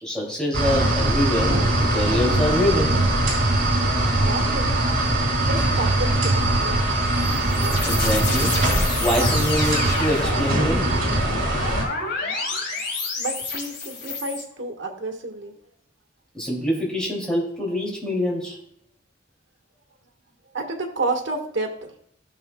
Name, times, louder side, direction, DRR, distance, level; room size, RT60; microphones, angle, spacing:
voice 1, 0.0-3.0 7.8-8.6 9.0-10.8 16.3-18.6, left 1 dB, 5° left, -3 dB, 2.9 m, -25 dB
sound 1, 0.5-11.8, right 1 dB, 50° right, 3.4 m, -21 dB
voice 2, 4.2-4.9 5.4-6.9 13.2-15.5 20.5-21.9, right 2 dB, 70° right, 3 dB, 1.8 m, -30 dB
sound 2, 6.8-14.4, left 3 dB, 65° left, 2.3 m, -29 dB
15.5 x 6.8 x 2.4 m, 0.70 s
head